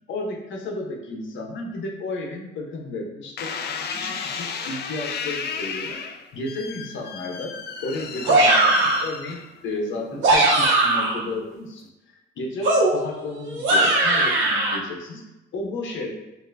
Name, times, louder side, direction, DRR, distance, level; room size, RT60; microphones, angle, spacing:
voice 1, 0.1-3.5 3.9-6.0 6.3-7.5 7.8-15.2 15.5-16.1, left 2 dB, 75° left, 1 dB, 0.9 m, -33 dB
sound 1, 3.4-9.8 10.4-10.9, left 6 dB, 55° left, 0.5 m, -33 dB
sound 2, 8.2-9.1 10.0-11.2 12.6-14.8, right 2 dB, 80° right, 0.9 m, -19 dB
5.5 x 2.8 x 2.6 m, 0.97 s
cardioid pair, 90°, 20 cm